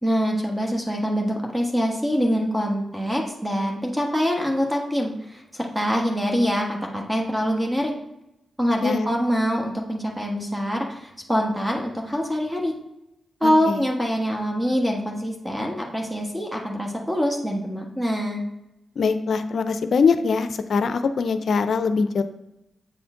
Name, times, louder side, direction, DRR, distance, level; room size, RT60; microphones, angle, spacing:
voice 1, 0.0-7.9 8.6-12.7 13.4-18.4, equal, 15° right, 0 dB, 1.3 m, -24 dB
voice 2, 13.4-13.8 19.0-22.2, left 5 dB, 70° left, 10 dB, 0.5 m, -22 dB
7.9 x 4.3 x 3.7 m, 0.88 s
cardioid pair, 50°, 0 cm